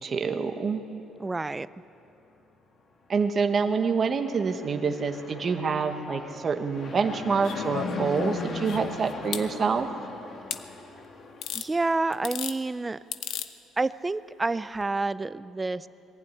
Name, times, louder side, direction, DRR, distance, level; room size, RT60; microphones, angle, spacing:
voice 1, 0.0-0.8 3.1-9.9, right 5 dB, 35° right, 6 dB, 1.2 m, -27 dB
voice 2, 1.2-1.7 11.5-13.0 13.8-15.9, right 3 dB, 15° right, 15 dB, 0.4 m, -28 dB
Fixed-wing aircraft airplane, 4.2-11.6, left 3 dB, 35° left, 1.9 m, -38 dB
sound 1, 7.4-9.5 10.5-10.6 11.4-11.7 12.1-12.6 13.1-13.5 14.7-14.8, left 10 dB, 65° left, 0.9 m, -35 dB
21.0 x 15.5 x 9.7 m, 2.7 s
cardioid pair, 150°, 0 cm